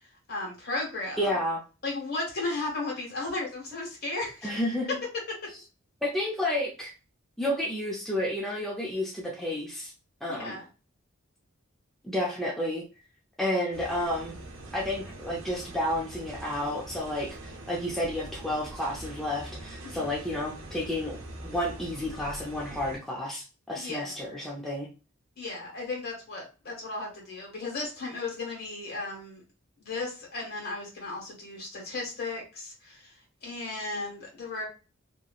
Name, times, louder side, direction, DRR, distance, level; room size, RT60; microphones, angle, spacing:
voice 1, 0.3-1.3 1.8-4.5 5.3-5.4 10.3-10.7 19.8-20.2 23.7-24.2 25.4-29.4 29.8-34.7, left 2 dB, 50° left, -1 dB, 1.5 m, -35 dB
voice 2, 1.2-1.6 4.4-4.9 6.0-6.9 7.4-9.9 10.2-10.6 12.0-12.8 13.4-14.3 14.7-21.2 21.4-24.9, left 1 dB, ahead, -4 dB, 0.5 m, -31 dB
sound 1, 13.7-23.0, right 2 dB, 70° right, 0.8 m, -43 dB
3.0 x 2.7 x 2.4 m, 0.32 s
head